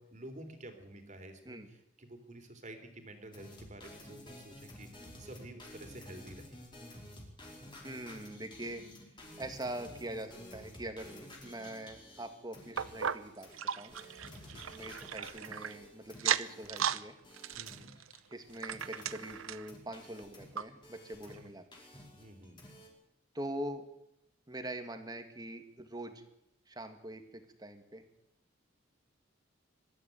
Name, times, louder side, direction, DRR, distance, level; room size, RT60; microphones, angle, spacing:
voice 1, 0.0-6.6 14.5-14.6 17.6-17.9 21.3-21.5 22.1-22.6, right 1 dB, 35° right, 5 dB, 3.3 m, -50 dB
sound 1, 3.3-18.1 18.4-21.4 21.7-22.9, left 1 dB, 25° left, 5.1 m, -52 dB
voice 2, 7.8-8.8 9.4-13.9 14.7-17.2 18.3-21.6 23.3-23.9 24.5-26.2 26.7-28.1, right 1 dB, 20° right, 7 dB, 2.0 m, -43 dB
sound 2, 12.8-15.7 16.1-17.0 17.3-19.7 20.2-20.3 20.6-20.7 21.3-21.4, right 8 dB, 85° right, 0.8 m, -36 dB
23.0 x 13.0 x 9.3 m, 0.83 s
head